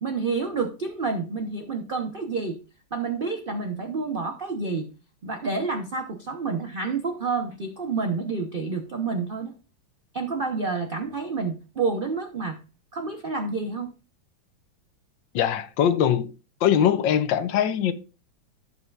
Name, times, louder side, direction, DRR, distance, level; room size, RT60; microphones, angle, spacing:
voice 1, 0.0-2.6 2.9-4.9 5.2-9.5 10.1-12.6 12.9-13.9, right 4 dB, 60° right, 0.5 m, -29 dB
voice 2, 15.3-16.3 16.6-17.9, left 9 dB, 75° left, 1.4 m, -22 dB
15.5 x 5.6 x 2.4 m
omnidirectional pair, 2.1 m